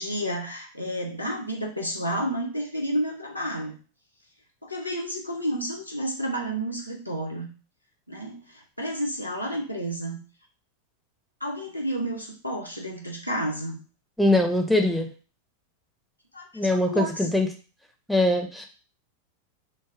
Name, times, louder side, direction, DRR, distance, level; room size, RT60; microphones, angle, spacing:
voice 1, 0.0-3.8 4.6-7.5 8.1-10.2 11.4-13.8 16.3-16.5 16.9-17.3, right 1 dB, 90° left, 0 dB, 0.6 m, -31 dB
voice 2, 14.2-15.1 16.5-17.5 18.1-18.7, left 1 dB, ahead, 3 dB, 0.4 m, -22 dB
3.2 x 2.1 x 2.4 m, 0.36 s
figure-of-eight pair, 90°, 0 cm